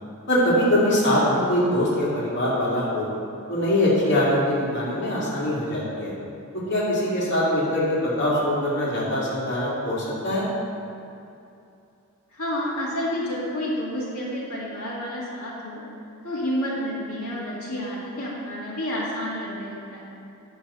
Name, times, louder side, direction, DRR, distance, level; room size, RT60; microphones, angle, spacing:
voice 1, 0.3-3.1 3.5-6.1 6.7-10.5, left 1 dB, 55° left, -7 dB, 2.3 m, -23 dB
voice 2, 12.3-15.8 16.2-20.1, equal, 75° left, -7 dB, 2.1 m, -30 dB
11.0 x 3.9 x 7.1 m, 2.7 s
head